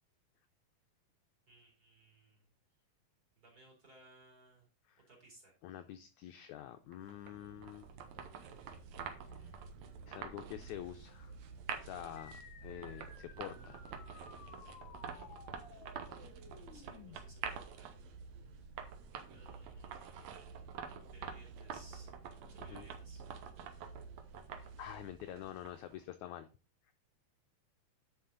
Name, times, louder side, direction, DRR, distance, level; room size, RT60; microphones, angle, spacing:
voice 1, 1.5-2.5 3.4-4.7 5.1-5.5 16.7-17.9 18.5-19.0 19.3-20.7 21.1-22.1 22.5-23.2, right 2 dB, 25° right, -1 dB, 3.2 m, -62 dB
voice 2, 5.6-7.9 9.2-9.4 10.1-11.3 11.8-13.8 22.6-22.9 24.8-26.5 26.9-27.0, left 12 dB, 85° left, 8 dB, 1.7 m, -47 dB
sound 1, 6.9-25.9, right 6 dB, 65° right, 1.8 m, -47 dB
sound 2, 12.2-17.2, left 5 dB, 55° left, 1.8 m, -56 dB
10.0 x 5.6 x 3.8 m, 0.32 s
omnidirectional pair, 4.0 m